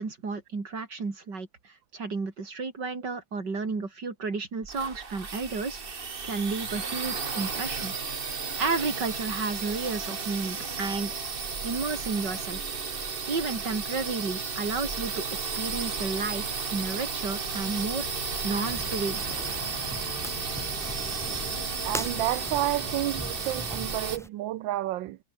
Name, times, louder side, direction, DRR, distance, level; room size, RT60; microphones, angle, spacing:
voice 1, 0.0-7.9 8.6-11.1 11.6-12.6 13.3-15.3 15.6-18.1 18.4-19.2, right 4 dB, 60° right, 4.3 m, -32 dB
sound 1, 4.6-24.2, right 5 dB, 30° right, 1.4 m, -33 dB
sound 2, 17.4-22.4 22.8-23.1, left 5 dB, 50° left, 2.8 m, -46 dB
sound 3, 18.6-24.3, equal, ahead, 6.9 m, -40 dB
voice 2, 21.8-25.2, right 14 dB, 80° right, 1.5 m, -30 dB
omnidirectional pair, 2.1 m